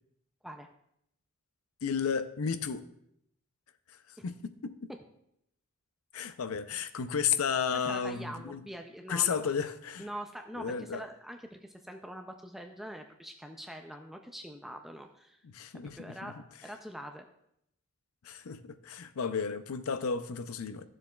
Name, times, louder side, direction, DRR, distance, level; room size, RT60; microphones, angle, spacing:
voice 1, 1.8-2.9 4.2-4.9 6.1-8.6 9.1-10.1 10.6-11.0 15.4-16.3 18.2-20.9, left 6 dB, 80° left, 0.5 m, -33 dB
voice 2, 7.7-9.5 10.0-15.4 15.8-17.3, equal, ahead, 0.4 m, -44 dB
13.0 x 7.4 x 2.3 m
head